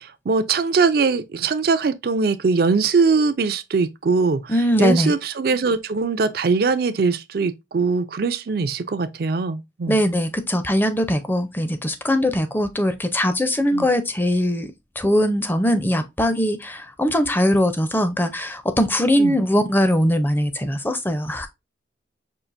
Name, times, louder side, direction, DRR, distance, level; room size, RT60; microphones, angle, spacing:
voice 1, 0.0-10.0 13.7-13.9 19.2-19.3, right 4 dB, 55° right, 0.4 m, -21 dB
voice 2, 4.5-5.1 9.9-14.7 15.0-21.5, equal, 10° left, 0.5 m, -21 dB
5.5 x 2.5 x 2.5 m
head